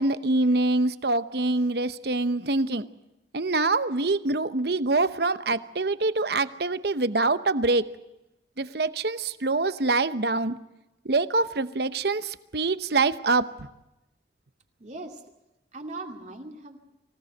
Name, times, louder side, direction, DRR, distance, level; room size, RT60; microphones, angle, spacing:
voice 1, 0.0-2.9 3.3-7.8 8.6-10.5 11.1-13.5, right 3 dB, 60° right, 13 dB, 0.9 m, -25 dB
voice 2, 14.8-15.2 15.7-16.8, right 2 dB, 40° right, 3 dB, 2.5 m, -39 dB
24.5 x 17.0 x 7.9 m, 0.94 s
head